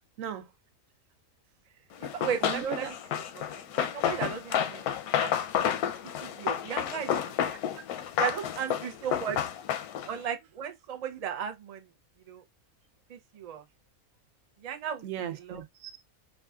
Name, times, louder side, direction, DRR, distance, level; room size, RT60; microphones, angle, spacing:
voice 1, 0.2-0.5 2.4-2.9 7.8-7.9 15.0-16.0, right 9 dB, 70° right, 1.0 m, -37 dB
Run, 2.0-10.2, left 9 dB, 90° left, 1.1 m, -30 dB
voice 2, 2.0-2.9 3.3-3.4 3.8-4.9 5.2-5.3 6.2-7.1 7.4-7.5 8.2-9.4 10.0-11.9 12.3-12.4 13.1-13.6 14.6-15.0 15.5-15.6, right 8 dB, 85° right, 0.3 m, -35 dB
5.1 x 2.4 x 2.3 m
omnidirectional pair, 1.5 m